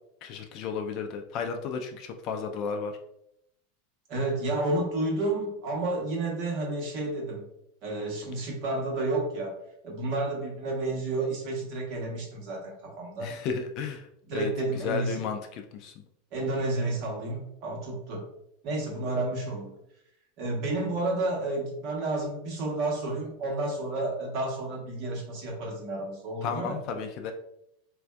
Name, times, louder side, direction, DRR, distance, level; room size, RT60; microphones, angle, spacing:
voice 1, 0.2-2.9 13.2-15.9 26.4-27.3, left 5 dB, 40° left, 5 dB, 0.3 m, -33 dB
voice 2, 4.1-7.4 7.8-9.6 9.8-13.3 14.3-15.2 16.3-18.2 18.6-19.7 20.4-26.8, right 2 dB, 40° right, -2 dB, 1.1 m, -31 dB
4.1 x 2.5 x 2.3 m, 0.77 s
supercardioid pair, 160°, 0 cm